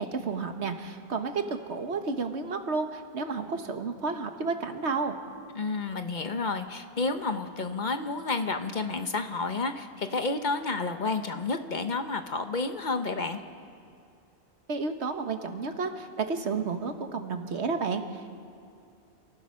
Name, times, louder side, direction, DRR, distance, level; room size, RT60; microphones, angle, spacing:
voice 1, 0.0-5.2 14.7-18.2, right 4 dB, 80° right, 7 dB, 1.5 m, -31 dB
voice 2, 5.5-13.4, left 3 dB, 45° left, 8 dB, 1.0 m, -30 dB
28.0 x 15.0 x 6.3 m, 2.5 s
omnidirectional pair, 1.1 m